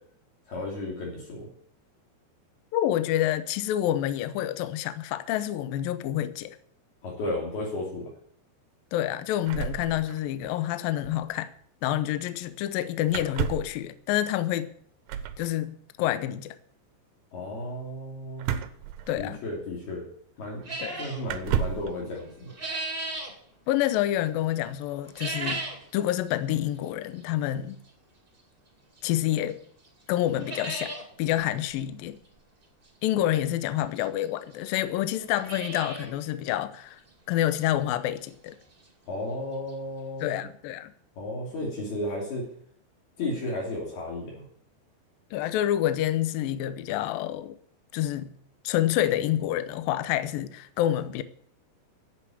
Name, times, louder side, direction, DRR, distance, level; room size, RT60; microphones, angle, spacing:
voice 1, 0.5-1.5 7.0-8.1 17.3-18.5 19.1-20.0 20.4-20.6 21.0-22.5 39.1-40.4 41.2-42.5 43.2-44.4, left 1 dB, 60° left, 4.9 m, -33 dB
voice 2, 2.7-6.6 8.9-11.5 11.8-14.7 15.4-16.6 19.1-19.4 20.8-21.0 23.7-25.6 25.9-27.8 29.0-29.6 30.1-30.9 31.2-32.2 33.0-37.0 37.3-38.6 40.2-40.9 45.3-47.6 47.9-48.3 48.6-51.2, left 13 dB, 80° left, 2.1 m, -28 dB
sound 1, 9.5-10.5 10.8-10.9 11.0-11.3 13.1-13.8 15.1-15.4 18.4-19.6 20.4-20.5 21.2-21.9, right 9 dB, 80° right, 2.1 m, -31 dB
sound 2, 20.6-21.2 22.2-23.3 25.0-25.9 26.3-26.4 27.2-27.3 29.0-29.1 29.5-29.6 29.9-30.0 30.2-31.0 31.4-31.5 31.7-31.8 33.4-33.5 34.2-34.3 34.5-34.6 35.1-36.1 36.5-36.6 37.1-37.2 37.6-37.7 39.4-39.5 39.7-39.8 40.2-40.3, right 2 dB, 25° right, 1.3 m, -35 dB
10.5 x 8.1 x 8.4 m
omnidirectional pair, 5.0 m